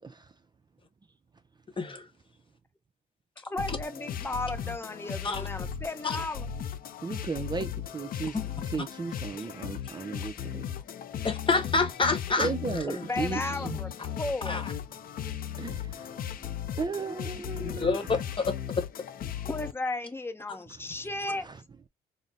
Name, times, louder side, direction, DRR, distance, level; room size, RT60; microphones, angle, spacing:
voice 1, 1.8-2.1 3.7-3.8 5.2-5.5 6.0-6.2 8.3-8.5 11.2-12.5 14.5-14.7 17.5-18.2, left 3 dB, 30° left, 1.0 m, -27 dB
voice 2, 3.4-6.5 12.9-13.9 14.2-14.7 19.5-21.5, left 2 dB, 15° left, 0.7 m, -34 dB
sound 1, 3.6-19.7, left 9 dB, 60° left, 0.5 m, -37 dB
voice 3, 7.0-8.4 8.6-10.7 12.4-13.8 15.6-16.4 16.8-18.2 21.4-21.6, right 4 dB, 25° right, 0.4 m, -35 dB
3.9 x 2.0 x 3.7 m
supercardioid pair, 70°, 17 cm